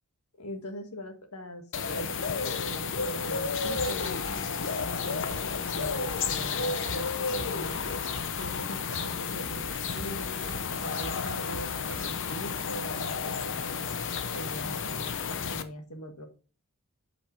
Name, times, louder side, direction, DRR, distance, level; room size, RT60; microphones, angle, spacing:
voice 1, 0.4-7.9 8.4-13.9 14.3-16.3, equal, 80° left, 5 dB, 1.7 m, -42 dB
sound 1, 1.7-15.6, left 5 dB, 55° left, 0.8 m, -32 dB
sound 2, 3.8-12.0, right 1 dB, 75° right, 1.3 m, -44 dB
8.7 x 5.2 x 4.5 m, 0.38 s
head